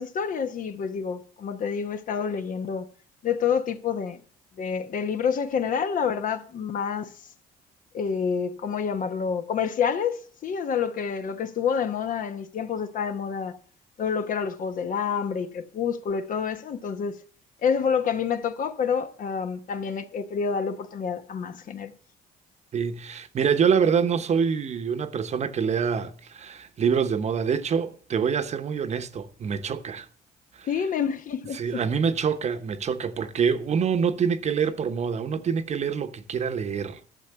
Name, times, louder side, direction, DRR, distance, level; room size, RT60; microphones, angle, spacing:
voice 1, 0.0-2.9 3.2-4.2 4.6-7.1 7.9-13.6 14.0-17.2 17.6-21.9 30.6-31.8, left 6 dB, 50° left, 1.1 m, -28 dB
voice 2, 22.7-30.1 30.5-30.7 31.5-37.0, right 6 dB, 40° right, 1.0 m, -26 dB
12.0 x 7.1 x 6.8 m
cardioid pair, 110°, 17 cm